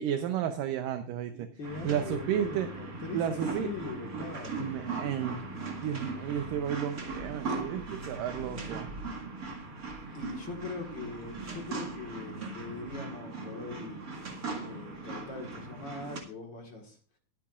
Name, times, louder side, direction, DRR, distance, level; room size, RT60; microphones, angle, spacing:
voice 1, 0.0-1.5 1.8-2.7 3.1-3.7 4.6-5.4 5.8-8.9, right 9 dB, 75° right, 8 dB, 2.3 m, -32 dB
voice 2, 1.3-4.7 10.1-14.0 14.6-17.0, left 3 dB, 45° left, 2 dB, 1.8 m, -41 dB
sound 1, 1.6-16.2, right 3 dB, 35° right, 1.6 m, -39 dB
21.5 x 8.9 x 2.4 m, 0.40 s
omnidirectional pair, 4.1 m